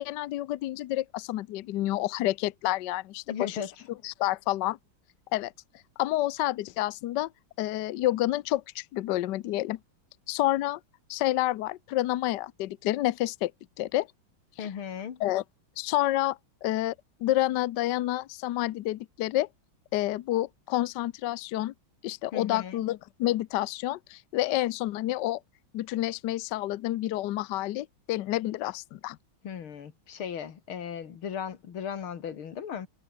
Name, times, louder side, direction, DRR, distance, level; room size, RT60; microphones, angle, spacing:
voice 1, 0.0-3.6 4.0-4.8 5.3-5.5 6.0-7.3 7.6-9.8 10.3-10.8 11.1-13.5 13.8-14.1 14.6-14.7 15.2-15.4 15.8-16.9 17.2-19.5 19.9-21.7 22.0-25.4 25.7-29.2, left 15 dB, 70° left, 1.2 m, -29 dB
voice 2, 3.3-3.7 14.6-15.2 22.3-22.8 29.4-32.9, left 8 dB, 90° left, 2.7 m, -36 dB
omnidirectional pair, 2.2 m